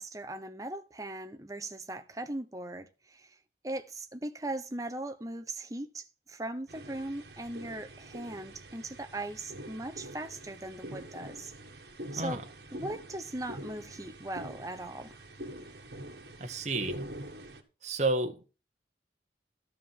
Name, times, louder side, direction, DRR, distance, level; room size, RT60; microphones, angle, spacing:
voice 1, 0.0-3.4 3.6-11.5 12.1-12.4 12.7-15.2, right 1 dB, 20° right, 0.8 m, -39 dB
sound 1, 6.7-17.6, right 1 dB, 70° right, 1.7 m, -45 dB
voice 2, 16.4-17.0 17.8-18.5, right 2 dB, 40° right, 1.2 m, -31 dB
13.0 x 5.0 x 7.3 m
head